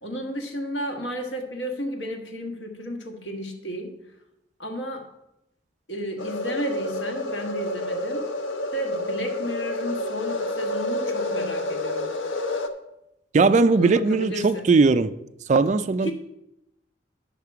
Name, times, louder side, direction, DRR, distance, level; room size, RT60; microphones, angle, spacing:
voice 1, 0.0-4.0 4.6-5.1 5.9-8.3 8.7-12.2 13.7-14.8 16.0-16.1, equal, 70° left, 1.6 m, -33 dB
sound 1, 6.2-12.7, left 1 dB, 85° left, 0.8 m, -29 dB
voice 2, 13.3-15.1 15.5-16.1, right 4 dB, 40° right, 0.3 m, -19 dB
11.0 x 5.7 x 4.7 m
head